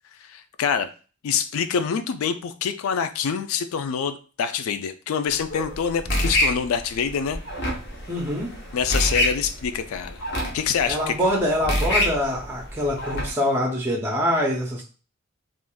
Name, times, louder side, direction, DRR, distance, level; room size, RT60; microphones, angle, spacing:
voice 1, 0.2-0.9 1.2-7.4 8.7-10.3 10.5-11.2, left 7 dB, 85° left, 10 dB, 0.3 m, -26 dB
sound 1, 5.3-13.3, equal, 50° left, 0.7 m, -27 dB
voice 2, 8.1-8.5 10.9-14.8, equal, 10° right, -2 dB, 0.5 m, -24 dB
3.4 x 2.5 x 2.2 m, 0.36 s
head